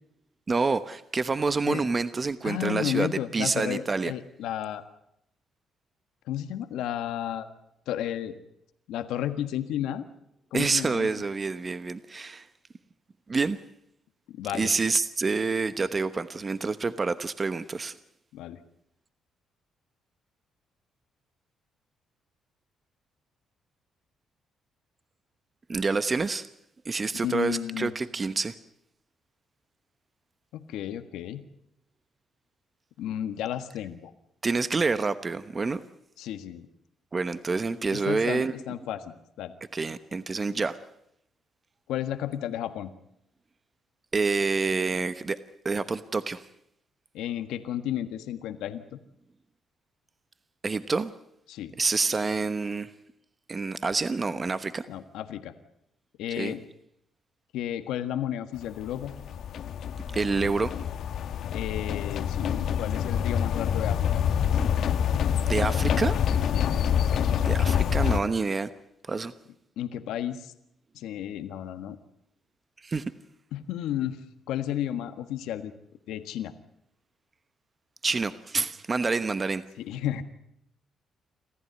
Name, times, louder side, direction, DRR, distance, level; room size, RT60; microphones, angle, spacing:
voice 1, 0.5-4.1 10.5-12.5 13.3-13.6 14.5-18.0 25.7-26.5 26.8-28.5 34.4-35.8 37.1-38.5 39.7-40.8 44.1-45.4 45.6-46.4 50.6-51.1 51.8-52.9 53.5-54.9 56.4-56.5 60.1-60.7 65.5-66.2 67.4-68.7 69.1-69.3 72.8-73.0 78.0-79.6, right 4 dB, 30° right, 12 dB, 1.1 m, -27 dB
voice 2, 2.4-4.8 6.3-7.5 7.9-8.4 8.9-10.1 10.5-11.1 14.3-14.7 18.3-18.6 27.2-27.9 30.5-31.4 33.0-34.1 36.2-36.7 37.9-39.5 41.9-42.9 47.1-49.0 51.5-51.7 54.9-55.5 56.2-56.6 57.5-59.1 61.5-64.2 66.5-66.7 69.8-70.5 70.9-72.0 73.5-74.2 74.5-75.7 76.1-76.5 79.8-80.2, left 11 dB, 90° left, 9 dB, 1.5 m, -32 dB
sound 1, 58.6-68.2, left 8 dB, 70° left, 1.4 m, -26 dB
27.0 x 14.5 x 9.5 m, 0.79 s
cardioid pair, 90°, 0 cm